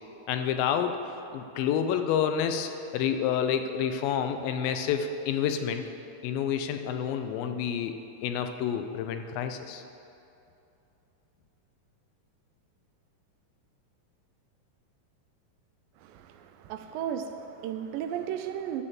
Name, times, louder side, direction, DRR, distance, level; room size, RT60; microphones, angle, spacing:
voice 1, 0.3-1.0 1.3-5.8 6.2-7.9 8.2-9.8, left 8 dB, 85° left, 7 dB, 2.4 m, -29 dB
voice 2, 16.0-18.8, right 9 dB, 80° right, 7 dB, 2.1 m, -35 dB
11.5 x 4.2 x 7.4 m, 2.7 s
omnidirectional pair, 4.0 m